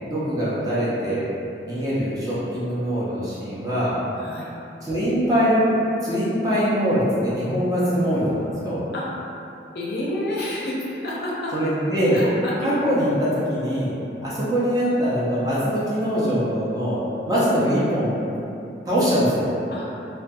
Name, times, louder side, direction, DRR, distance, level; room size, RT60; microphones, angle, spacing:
voice 1, 0.0-1.2 1.6-3.9 4.8-5.7 6.0-8.8 11.5-12.2 12.6-17.0 17.3-18.2 18.8-19.4, equal, 20° right, -9 dB, 0.5 m, -22 dB
voice 2, 4.2-4.5 8.9-9.1 9.7-11.5 12.1-12.7 13.8-14.1 19.7-19.9, left 1 dB, 60° left, -5 dB, 0.4 m, -30 dB
2.3 x 2.2 x 2.6 m, 2.8 s
head